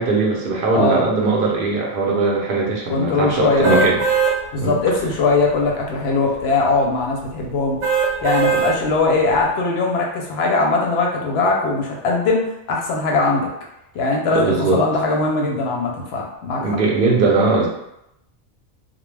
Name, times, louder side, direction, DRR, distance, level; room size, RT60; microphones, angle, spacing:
voice 1, 0.0-4.0 4.6-4.7 14.3-14.9 16.6-17.7, right 3 dB, 55° right, -2 dB, 0.7 m, -19 dB
voice 2, 0.7-1.1 2.9-3.9 4.5-7.8 8.2-13.5 13.9-16.7, left 3 dB, 70° left, 0 dB, 0.8 m, -20 dB
sound 1, 3.6-4.3 4.9-5.0 7.8-8.7 9.3-9.4, right 5 dB, 80° right, 1.0 m, -19 dB
2.2 x 2.1 x 3.1 m, 0.83 s
omnidirectional pair, 1.2 m